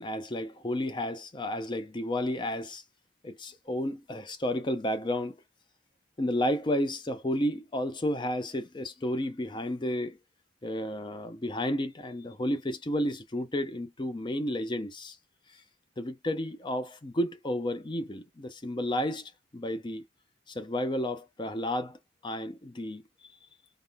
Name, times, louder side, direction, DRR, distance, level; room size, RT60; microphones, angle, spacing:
voice 1, 0.0-2.8 3.2-5.4 6.2-10.2 10.6-15.2 16.0-20.0 20.5-23.4, left 1 dB, 25° left, 0.5 m, -32 dB
3.5 x 2.1 x 2.2 m
head